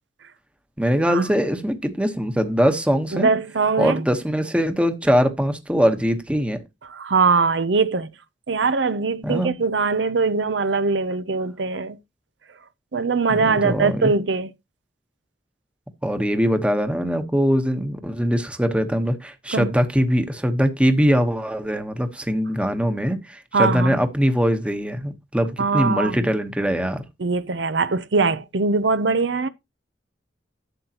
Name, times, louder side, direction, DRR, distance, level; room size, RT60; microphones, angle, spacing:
voice 1, 0.8-3.3 3.8-6.6 9.2-9.5 13.3-14.1 16.0-27.0, equal, 5° right, 1.1 m, -22 dB
voice 2, 3.1-4.0 6.9-8.1 8.5-12.0 12.9-14.5 19.5-19.7 23.5-24.0 25.6-26.3 27.2-29.5, right 4 dB, 75° right, 0.7 m, -21 dB
11.5 x 7.9 x 2.9 m
head